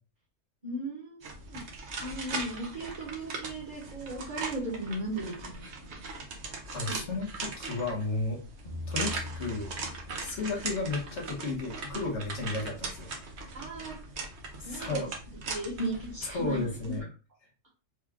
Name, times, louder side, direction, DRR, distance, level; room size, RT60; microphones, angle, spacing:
voice 1, 0.6-1.2 1.5-1.6 2.0-6.3 6.9-7.0 13.5-14.0 14.6-15.1 15.5-16.9, right 1 dB, 35° right, -3 dB, 1.2 m, -37 dB
sound 1, 1.2-17.0, right 3 dB, 60° right, 1.1 m, -40 dB
voice 2, 6.7-8.4 8.9-9.7 10.2-13.1 14.6-15.1 16.2-17.1, left 3 dB, 65° left, 0 dB, 1.5 m, -33 dB
sound 2, 8.7-10.9, left 3 dB, 40° left, 1.1 m, -41 dB
4.6 x 2.4 x 3.5 m, 0.34 s
omnidirectional pair, 1.3 m